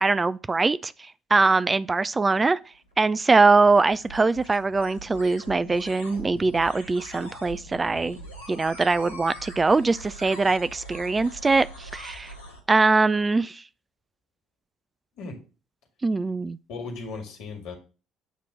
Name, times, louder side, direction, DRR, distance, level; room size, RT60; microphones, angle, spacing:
voice 1, 0.0-2.6 3.0-8.2 8.5-12.3 12.7-13.6 16.0-16.6, right 3 dB, 25° right, 0.3 m, -22 dB
sound 1, 2.7-12.6, equal, 85° left, 1.4 m, -43 dB
voice 2, 16.7-17.7, left 4 dB, 60° left, 1.9 m, -36 dB
8.0 x 3.0 x 6.2 m
figure-of-eight pair, 50°, 0 cm